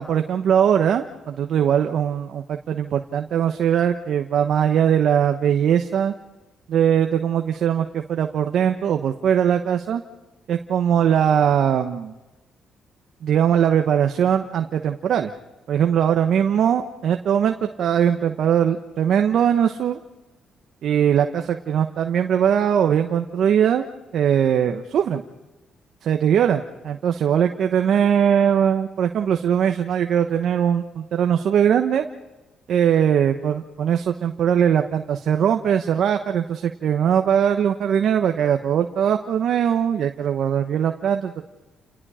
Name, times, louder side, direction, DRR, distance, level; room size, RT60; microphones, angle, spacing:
voice 1, 0.0-6.1 6.7-10.0 10.5-12.1 13.2-15.3 15.7-20.0 20.8-23.9 24.1-25.2 26.0-32.1 32.7-41.4, right 8 dB, 70° right, 6 dB, 1.1 m, -20 dB
29.5 x 19.0 x 5.0 m, 1.1 s
cardioid pair, 80°, 0 cm